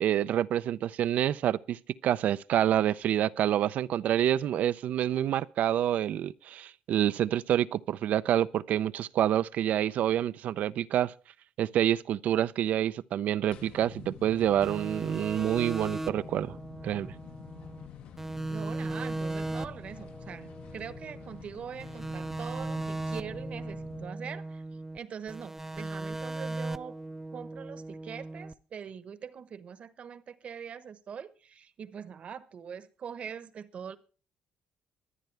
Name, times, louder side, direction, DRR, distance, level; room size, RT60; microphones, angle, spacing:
voice 1, 0.0-11.1 11.6-16.6 16.8-17.1, right 11 dB, 65° right, 0.5 m, -27 dB
sound 1, 13.5-24.1, left 7 dB, 85° left, 2.6 m, -48 dB
sound 2, 14.6-17.9 18.2-21.4 21.8-25.0 25.3-28.5, right 2 dB, 10° right, 0.6 m, -37 dB
voice 2, 18.5-24.6 24.9-27.0 27.3-34.0, right 7 dB, 50° right, 1.1 m, -43 dB
23.5 x 9.2 x 3.4 m
cardioid pair, 115°, 3 cm